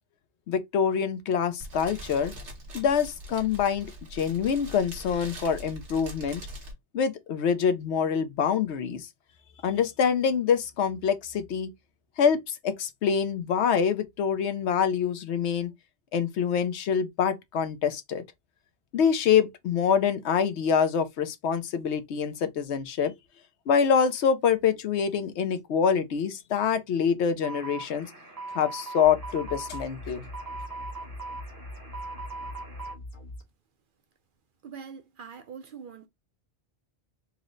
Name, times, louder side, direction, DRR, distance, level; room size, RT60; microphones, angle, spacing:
voice 1, 0.5-2.3 2.7-6.4 6.9-9.1 9.6-11.7 12.2-15.7 16.1-18.2 18.9-23.1 23.7-28.1 28.5-30.2, left 7 dB, 75° left, 0.9 m, -25 dB
Fire, 1.6-6.7, right 1 dB, 85° right, 1.7 m, -43 dB
sound 1, 27.4-32.9, right 3 dB, 20° right, 0.8 m, -40 dB
sound 2, 29.0-33.4, left 1 dB, 55° left, 1.6 m, -43 dB
voice 2, 34.6-36.1, right 6 dB, 60° right, 0.6 m, -43 dB
4.2 x 2.1 x 3.7 m
omnidirectional pair, 1.2 m